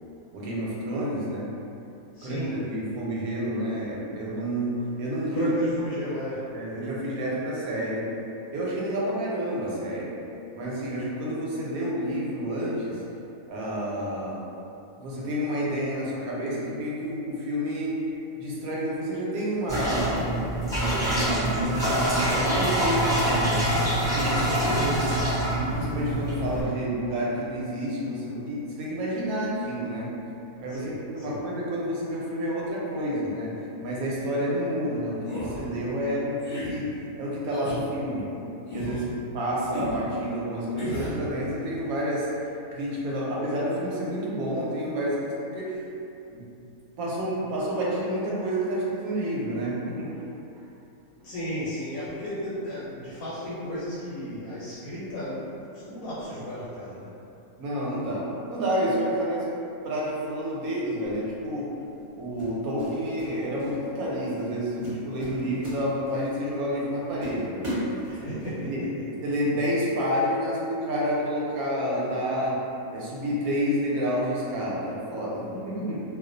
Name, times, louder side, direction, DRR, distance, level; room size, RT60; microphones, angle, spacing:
voice 1, 0.3-1.5 2.2-5.5 6.5-8.1 8.5-10.1 10.5-13.0 13.5-14.4 15.0-18.0 18.4-20.3 20.7-23.6 24.0-25.2 25.4-30.1 30.6-33.5 33.8-36.9 37.2-38.3 38.7-42.3 42.7-45.8 46.3-46.4 47.0-50.1 57.6-59.5 59.8-61.7 62.1-68.8 69.2-72.6 72.9-76.0, equal, 85° right, -5 dB, 1.1 m, -29 dB
voice 2, 2.1-2.6 5.3-6.5 24.3-24.7 30.7-31.4 51.1-57.1 68.1-68.7, equal, 80° left, -10 dB, 1.0 m, -34 dB
sound 1, 19.7-26.6, right 1 dB, 5° left, 0.5 m, -25 dB
sound 2, 35.2-35.6 36.4-36.7 37.5-37.8 38.7-39.0 39.7-40.0 40.8-41.2, left 1 dB, 55° left, 0.5 m, -34 dB
sound 3, 61.0-61.3 62.4-63.3 63.6-63.9 64.4-64.5 64.8-66.3 66.7-66.8 67.2-68.5, equal, 45° right, 0.7 m, -36 dB
2.4 x 2.2 x 2.5 m, 2.8 s
omnidirectional pair, 1.5 m